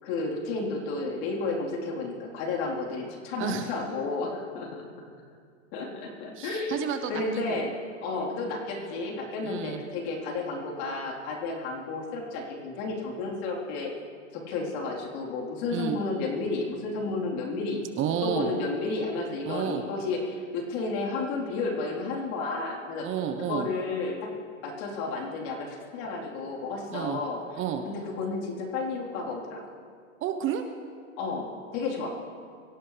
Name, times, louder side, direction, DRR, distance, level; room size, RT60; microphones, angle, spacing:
voice 1, 0.0-4.9 5.7-7.7 8.0-13.9 14.3-17.8 18.2-23.1 23.5-24.3 24.6-27.4 27.9-29.6 31.2-31.5 31.7-32.1, left 3 dB, 50° left, -2 dB, 4.2 m, -32 dB
voice 2, 3.4-3.7 6.4-7.6 9.4-9.8 15.7-16.0 18.0-18.5 19.5-19.8 23.0-23.7 26.9-27.2 27.6-27.8 30.2-30.6 32.0-32.1, right 9 dB, 30° right, 7 dB, 1.1 m, -30 dB
24.0 x 17.0 x 3.4 m, 2.2 s
hypercardioid pair, 125°, 41 cm